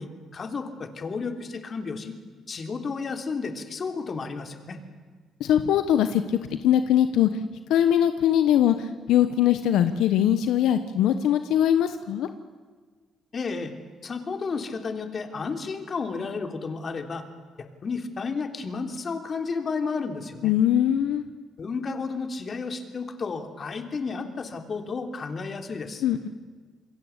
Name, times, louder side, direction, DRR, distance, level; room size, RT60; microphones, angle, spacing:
voice 1, 0.0-2.2 2.5-4.8 13.3-13.7 14.0-17.2 17.8-20.5 21.6-26.0, left 4 dB, 45° left, 6 dB, 3.3 m, -32 dB
voice 2, 5.4-7.3 7.7-12.3 20.4-21.2 26.0-26.3, left 10 dB, 85° left, 9 dB, 1.1 m, -21 dB
27.5 x 22.0 x 8.3 m, 1.5 s
cardioid pair, 90°, 0 cm